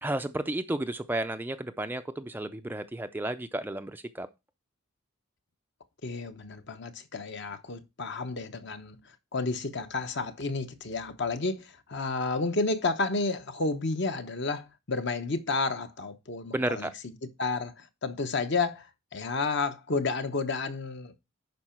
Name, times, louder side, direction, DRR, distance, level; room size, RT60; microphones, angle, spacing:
voice 1, 0.0-4.3 16.5-16.9, right 1 dB, 10° right, 0.4 m, -32 dB
voice 2, 6.0-9.0 9.3-17.1 17.4-18.9 19.1-21.1, left 3 dB, 50° left, 0.9 m, -31 dB
11.0 x 4.7 x 4.4 m
head